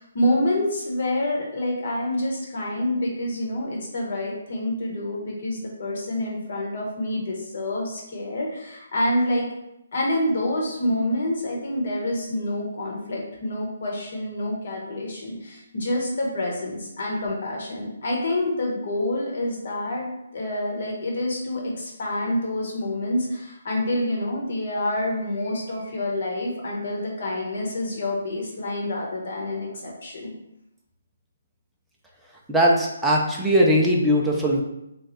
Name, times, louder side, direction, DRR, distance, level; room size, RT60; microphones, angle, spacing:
voice 1, 0.0-9.5 9.9-30.3, left 1 dB, 60° left, -1 dB, 1.2 m, -27 dB
voice 2, 32.5-34.6, equal, ahead, -5 dB, 0.5 m, -20 dB
3.2 x 2.3 x 4.0 m, 0.86 s
hypercardioid pair, 160°, 0 cm